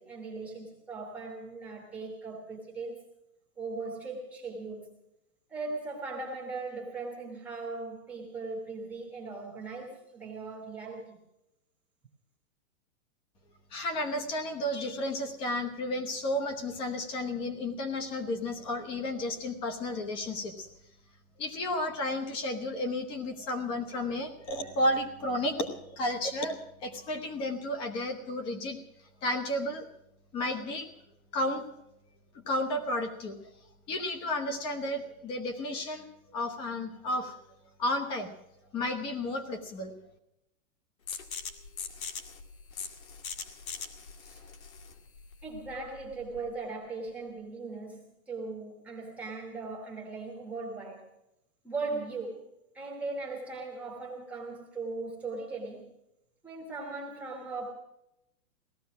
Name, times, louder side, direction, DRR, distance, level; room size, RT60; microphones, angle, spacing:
voice 1, 0.0-3.0 3.6-5.0 5.5-11.2 44.2-44.4 45.4-51.1 51.6-52.5 52.7-55.9 56.4-57.7, right 3 dB, 5° right, -2 dB, 1.2 m, -39 dB
voice 2, 13.7-20.7 21.4-28.8 29.2-29.8 30.3-30.9 31.3-31.7 32.5-33.4 33.9-36.0 36.3-37.3 37.8-38.3 38.7-39.9, left 1 dB, 10° left, 7 dB, 1.0 m, -32 dB
sound 1, 41.1-46.6, left 5 dB, 70° left, 2.2 m, -42 dB
17.5 x 14.0 x 6.0 m, 0.83 s
supercardioid pair, 180°, 43 cm